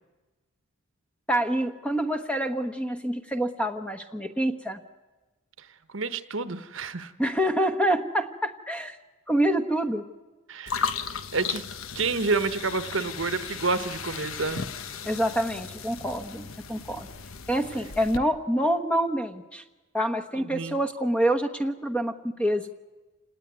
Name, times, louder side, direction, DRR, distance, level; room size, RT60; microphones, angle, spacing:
voice 1, 1.3-4.8 7.2-9.0 9.3-10.0 15.0-17.1 17.5-19.6 19.9-22.7, right 1 dB, 5° left, 7 dB, 1.1 m, -26 dB
voice 2, 5.9-7.1 10.5-10.9 11.3-11.6 11.9-14.7 20.4-20.8, right 3 dB, 60° right, 11 dB, 1.1 m, -29 dB
sound 1, 10.7-18.2, left 6 dB, 70° left, 1.1 m, -36 dB
28.0 x 19.0 x 9.5 m, 1.2 s
head